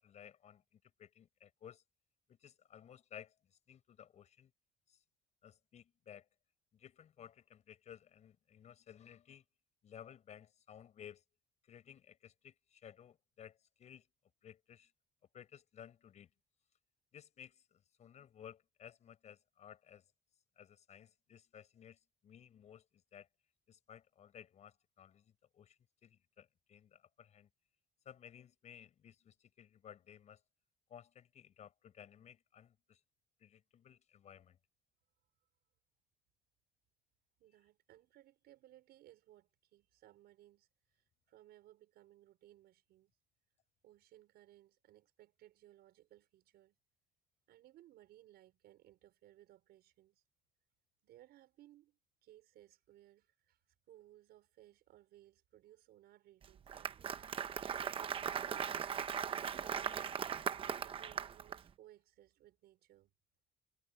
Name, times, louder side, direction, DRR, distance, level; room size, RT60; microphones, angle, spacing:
voice 1, 0.0-1.8 2.3-4.5 4.9-5.0 5.4-6.3 6.7-9.4 9.8-11.2 11.6-14.1 14.4-14.9 15.3-16.3 17.1-20.1 20.6-23.3 23.7-27.5 28.0-30.4 30.9-33.0 33.4-34.6, left 9 dB, 40° left, 6.0 m, -57 dB
voice 2, 37.4-40.7 40.9-43.1 43.8-46.8 47.5-50.2 51.0-53.6 53.9-57.0 57.7-60.2 60.8-63.1, right 14 dB, 70° right, 5.0 m, -63 dB
Applause, 56.4-61.6, right 8 dB, 30° right, 0.9 m, -39 dB
cardioid pair, 170°, 18 cm